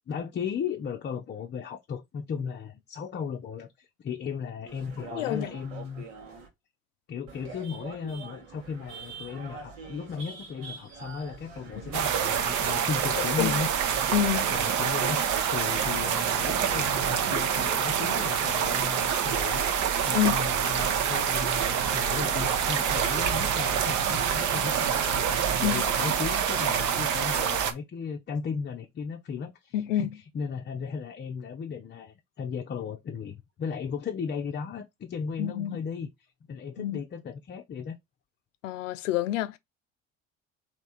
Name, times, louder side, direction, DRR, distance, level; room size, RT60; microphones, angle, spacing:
voice 1, 0.1-6.0 7.1-14.0 14.5-30.1 30.3-36.1 36.5-38.0, left 6 dB, 30° left, 0.6 m, -36 dB
sound 1, 4.7-6.5 7.3-13.7 14.0-17.7 18.6-19.5, right 5 dB, 75° right, 1.4 m, -44 dB
voice 2, 5.1-5.5 13.2-13.5 14.1-14.5 20.1-20.4 25.6-25.9 29.7-30.1 35.4-35.8 36.8-37.0 38.6-39.6, left 12 dB, 80° left, 0.5 m, -28 dB
sound 2, 11.9-27.7, right 8 dB, 50° right, 0.8 m, -26 dB
3.4 x 2.9 x 4.1 m
hypercardioid pair, 60°, 37 cm